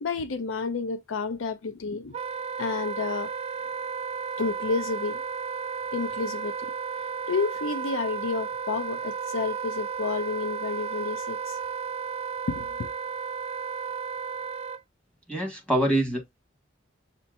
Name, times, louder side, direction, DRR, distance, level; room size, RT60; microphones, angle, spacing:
voice 1, 0.0-2.1 2.6-3.3 4.4-5.2 5.9-6.7 7.3-11.6 12.5-12.9, left 4 dB, 90° left, 0.6 m, -30 dB
Wind instrument woodwind instrument, 2.1-14.8, right 6 dB, 30° right, 0.3 m, -33 dB
voice 2, 15.3-16.4, right 1 dB, 5° left, 1.7 m, -25 dB
6.9 x 2.9 x 2.6 m
head